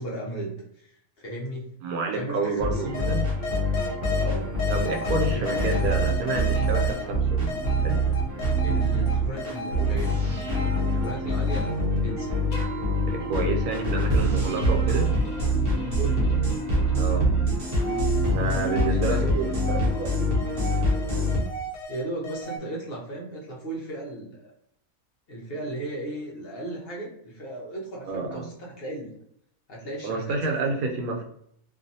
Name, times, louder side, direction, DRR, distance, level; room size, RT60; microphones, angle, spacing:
voice 1, 0.0-1.7 2.1-3.1 4.1-4.6 5.3-5.8 8.6-10.2 10.9-11.7 12.0-12.3 15.8-16.4 18.9-19.4 21.9-24.5 25.3-29.1 29.7-30.7, right 1 dB, 55° left, -3 dB, 0.7 m, -36 dB
voice 2, 1.8-3.3 4.7-8.0 13.1-15.1 17.0-17.3 18.3-20.3 28.0-28.4 30.0-31.2, right 3 dB, 90° right, 2 dB, 1.1 m, -29 dB
sound 1, 2.6-21.4, equal, 50° right, 0.8 m, -25 dB
sound 2, 2.9-4.2 4.6-7.0 7.5-10.1 10.4-17.2 17.6-22.6, left 1 dB, 75° left, 1.1 m, -36 dB
2.6 x 2.4 x 2.6 m, 0.70 s
omnidirectional pair, 1.5 m